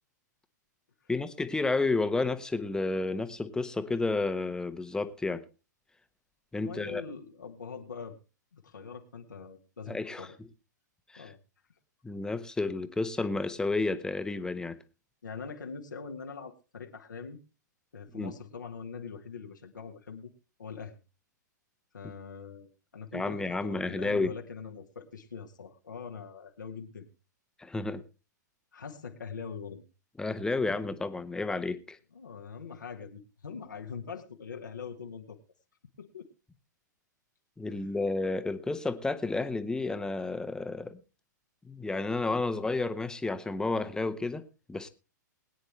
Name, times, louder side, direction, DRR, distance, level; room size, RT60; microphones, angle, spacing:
voice 1, 1.1-5.4 6.5-7.0 9.9-10.3 11.1-11.3 12.0-14.8 18.1-18.3 23.1-24.3 27.6-28.0 30.2-32.0 37.6-41.0 41.6-44.4 44.7-44.9, left 3 dB, 5° left, 11 dB, 1.1 m, -31 dB
voice 2, 6.6-8.2 8.5-10.4 11.2-11.4 15.2-17.4 17.9-20.3 20.6-21.0 21.9-27.1 28.7-29.8 32.1-35.4 36.0-36.3 37.7-37.9, left 5 dB, 80° left, 3 dB, 1.7 m, -43 dB
21.0 x 9.4 x 3.2 m, 0.30 s
figure-of-eight pair, 105°, 10 cm